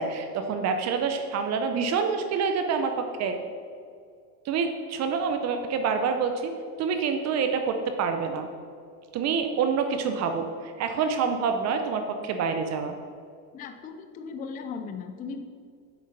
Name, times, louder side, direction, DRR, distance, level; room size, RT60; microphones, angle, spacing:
voice 1, 0.0-3.4 4.5-6.5 6.8-8.5 9.1-13.0, right 5 dB, 35° right, 6 dB, 0.8 m, -27 dB
voice 2, 13.5-15.4, left 5 dB, 20° left, 7 dB, 0.4 m, -37 dB
8.0 x 6.3 x 5.4 m, 2.2 s
supercardioid pair, 125°, 44 cm